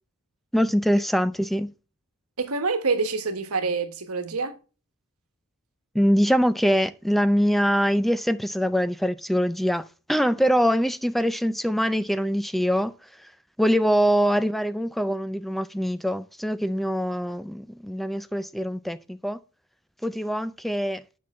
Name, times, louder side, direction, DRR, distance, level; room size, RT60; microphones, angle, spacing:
voice 1, 0.5-1.7 5.9-12.9 13.6-19.4 20.0-21.0, equal, ahead, 0.3 m, -23 dB
voice 2, 2.4-4.6, right 4 dB, 85° right, 1.2 m, -26 dB
8.6 x 6.0 x 3.0 m
head